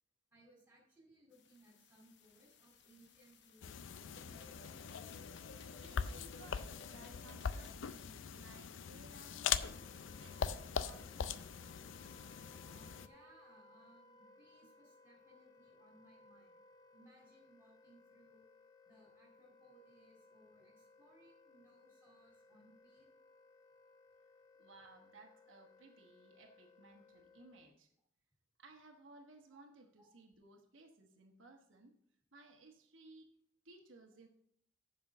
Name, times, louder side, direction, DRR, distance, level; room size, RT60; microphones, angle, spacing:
voice 1, 0.3-4.7 12.7-16.6 16.9-18.4 18.9-23.1 29.5-29.6 30.0-30.1, right 1 dB, 10° right, -2 dB, 3.7 m, -66 dB
sound 1, 1.3-7.7, left 4 dB, 60° left, 0.8 m, -59 dB
sound 2, 3.6-13.1, left 7 dB, 80° left, 0.4 m, -42 dB
voice 2, 5.8-11.4 24.6-27.9 28.6-31.9 32.3-33.3 33.6-34.3, right 2 dB, 85° right, 2 dB, 1.2 m, -60 dB
Wind instrument woodwind instrument, 9.5-27.8, left 2 dB, 20° left, 0.7 m, -64 dB
7.2 x 5.5 x 6.7 m, 0.69 s
head